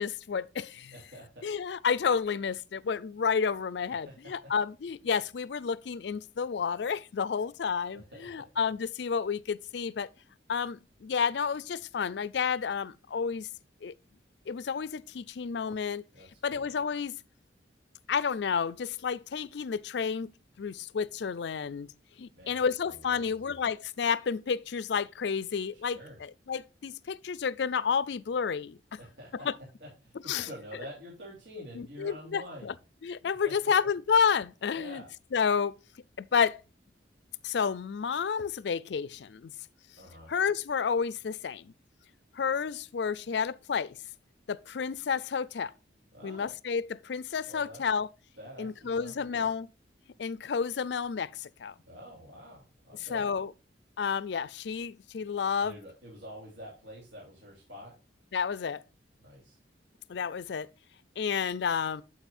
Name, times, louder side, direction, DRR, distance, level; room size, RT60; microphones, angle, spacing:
voice 1, 0.0-0.9 1.4-10.1 10.5-13.5 13.8-13.9 14.5-16.0 16.4-17.2 18.1-20.3 20.6-21.9 22.2-29.0 29.5-29.6 30.3-30.5 31.6-32.7 33.0-35.0 35.3-35.8 36.2-36.6 37.4-39.5 40.3-41.7 42.3-44.0 44.5-45.7 46.2-48.1 48.6-49.7 50.2-51.7 53.0-53.5 54.0-55.8 58.3-58.8 60.1-60.7 61.2-62.0, left 6 dB, 65° left, 0.4 m, -30 dB
voice 2, 0.9-1.4 4.0-4.1 7.9-8.4 16.1-16.7 22.3-22.6 22.9-23.5 25.7-26.2 29.0-29.5 29.8-32.7 33.4-33.5 34.7-35.1 40.0-40.3 46.1-46.5 47.5-47.8 48.4-49.5 51.9-53.3 55.6-57.9 59.2-59.6, equal, 85° right, 2.8 m, -47 dB
9.0 x 7.7 x 2.5 m
head